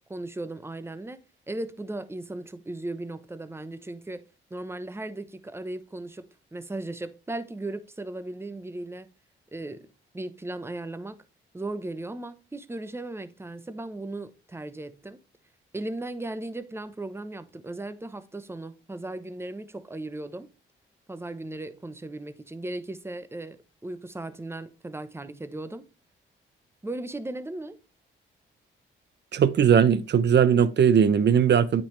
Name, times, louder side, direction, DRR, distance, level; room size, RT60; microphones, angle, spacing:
voice 1, 0.1-9.1 9.5-11.2 11.5-15.2 15.7-20.5 21.1-25.9 26.8-27.8, right 2 dB, 10° right, 0.9 m, -37 dB
voice 2, 29.3-31.8, right 8 dB, 60° right, 0.8 m, -19 dB
8.8 x 5.5 x 3.2 m
cardioid pair, 75°, 21 cm